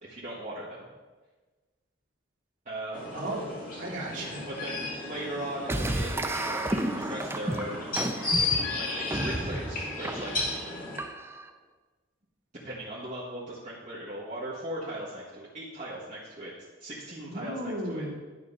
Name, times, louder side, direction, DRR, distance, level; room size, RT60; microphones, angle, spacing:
voice 1, 0.0-0.9 2.6-3.0 4.5-7.8 8.6-10.3 12.6-16.5 16.8-18.1, right 1 dB, 40° right, -8 dB, 1.5 m, -38 dB
sound 1, 2.9-11.0, left 3 dB, 45° left, 2.0 m, -34 dB
voice 2, 3.1-4.4 17.2-18.1, right 1 dB, 75° right, -5 dB, 1.6 m, -35 dB
sound 2, 5.7-11.5, right 1 dB, 15° right, 0.4 m, -32 dB
10.5 x 3.8 x 5.5 m, 1.3 s
head